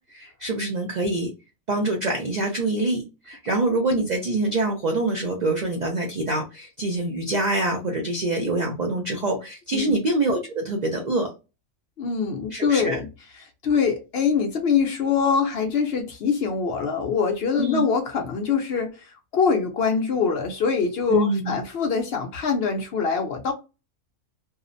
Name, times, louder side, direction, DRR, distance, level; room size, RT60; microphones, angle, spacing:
voice 1, 0.1-1.3 1.7-11.3 12.5-13.0 17.6-17.9 21.1-21.6, right 2 dB, 80° right, 0.4 m, -25 dB
voice 2, 12.0-13.1 13.6-23.5, left 6 dB, 65° left, 0.6 m, -24 dB
2.7 x 2.0 x 2.5 m
omnidirectional pair, 1.5 m